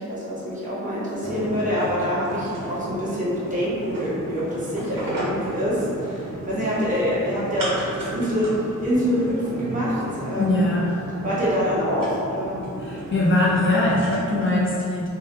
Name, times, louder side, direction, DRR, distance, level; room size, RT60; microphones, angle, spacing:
voice 1, 0.0-10.6 11.2-12.6, equal, 25° right, -10 dB, 1.0 m, -25 dB
sound 1, 1.2-14.5, equal, 85° right, 0.9 m, -33 dB
voice 2, 10.4-11.0 12.8-15.1, left 2 dB, 40° left, -6 dB, 0.4 m, -21 dB
2.8 x 2.3 x 3.3 m, 2.5 s
wide cardioid pair, 125°, 32 cm